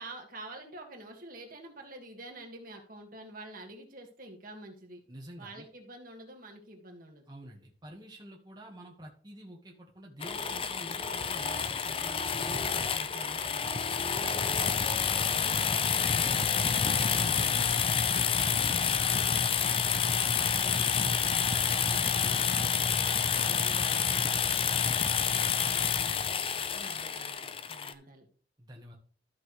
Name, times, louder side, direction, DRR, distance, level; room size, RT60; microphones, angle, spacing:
voice 1, 0.0-5.0 5.4-7.3 18.8-23.1 23.4-28.3, right 2 dB, 50° right, 2 dB, 2.0 m, -48 dB
voice 2, 5.1-5.7 7.3-13.8 14.1-17.9 28.6-29.0, right 1 dB, 25° right, -2 dB, 1.5 m, -48 dB
sound 1, 10.2-27.9, left 7 dB, 30° left, 0.5 m, -28 dB
13.5 x 6.0 x 3.2 m, 0.44 s
head